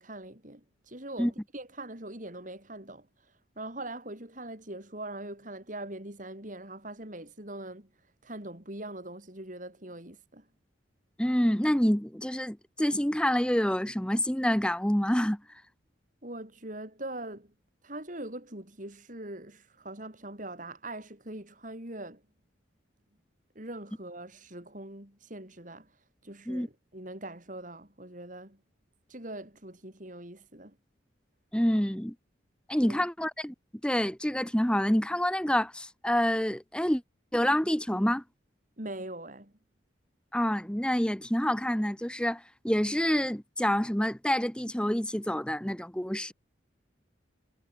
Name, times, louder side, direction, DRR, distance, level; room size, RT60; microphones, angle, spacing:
voice 1, 0.0-3.1 3.6-7.9 8.2-10.5 16.2-17.5 17.8-22.2 23.5-25.9 26.2-28.6 29.1-30.8 32.8-33.0 38.8-39.5, right 1 dB, 45° right, 4.7 m, -42 dB
voice 2, 11.2-15.4 26.5-26.7 31.5-32.1 32.7-33.5 33.8-37.0 37.3-38.2 40.3-46.3, equal, 5° left, 1.0 m, -27 dB
head